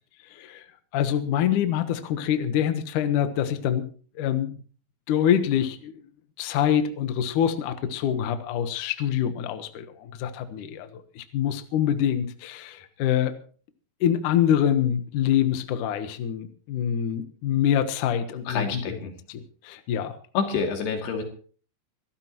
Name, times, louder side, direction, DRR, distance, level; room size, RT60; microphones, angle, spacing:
voice 1, 0.3-0.7 0.9-3.9 4.2-4.6 5.1-5.9 6.4-13.4 14.0-19.0 19.3-20.2, left 9 dB, 65° left, 9 dB, 2.3 m, -25 dB
voice 2, 18.5-19.1 20.3-21.2, left 5 dB, 85° left, 3 dB, 4.6 m, -28 dB
25.0 x 13.0 x 3.0 m, 0.41 s
omnidirectional pair, 4.6 m